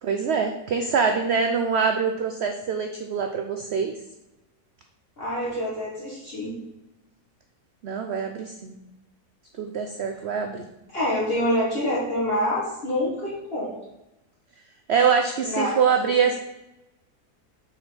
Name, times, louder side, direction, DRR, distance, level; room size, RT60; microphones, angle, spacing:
voice 1, 0.0-3.9 7.8-8.7 9.6-10.6 14.9-16.4, right 6 dB, 70° right, 5 dB, 0.6 m, -24 dB
voice 2, 5.2-6.5 10.9-13.7 15.4-15.7 16.0-16.1, left 1 dB, 40° left, -5 dB, 1.5 m, -26 dB
5.0 x 4.4 x 5.6 m, 0.93 s
omnidirectional pair, 1.7 m